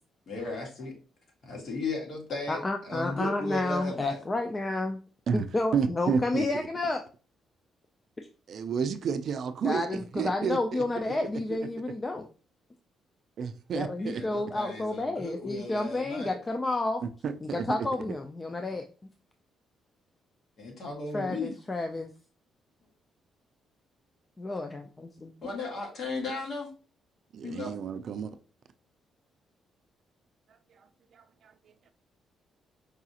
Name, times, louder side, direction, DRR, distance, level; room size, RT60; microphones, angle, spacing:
voice 1, 0.3-0.9 1.4-4.2 10.9-11.3 14.0-16.4 20.6-21.5 25.4-26.7 27.4-27.7, left 3 dB, 55° left, 1.6 m, -36 dB
voice 2, 2.5-5.0 5.3-7.0 9.6-12.3 13.7-17.0 17.5-18.9 21.1-22.1 24.4-25.3, left 2 dB, 20° left, 0.3 m, -30 dB
voice 3, 5.7-6.7 8.5-9.9 10.1-10.8 13.4-14.2 17.0-17.9 27.3-28.3 30.7-30.8 31.1-31.8, right 6 dB, 55° right, 0.4 m, -31 dB
4.8 x 2.4 x 2.8 m
cardioid pair, 125°, 0 cm